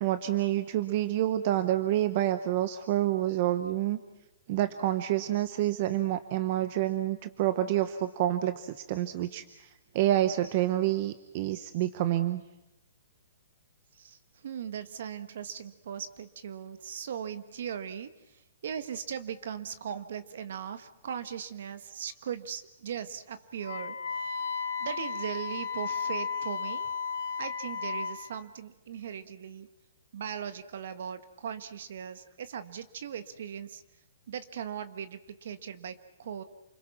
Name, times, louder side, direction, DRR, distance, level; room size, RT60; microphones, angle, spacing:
voice 1, 0.0-4.0 4.5-9.7 9.9-12.4, right 13 dB, 40° right, 11 dB, 1.0 m, -28 dB
voice 2, 13.9-24.4 24.8-26.9 27.4-29.7 30.1-33.8 34.3-36.4, right 8 dB, 60° right, 11 dB, 1.4 m, -39 dB
Wind instrument woodwind instrument, 23.6-28.2, left 6 dB, 60° left, 1.8 m, -34 dB
29.0 x 22.0 x 6.0 m, 0.94 s
hypercardioid pair, 155°, 0 cm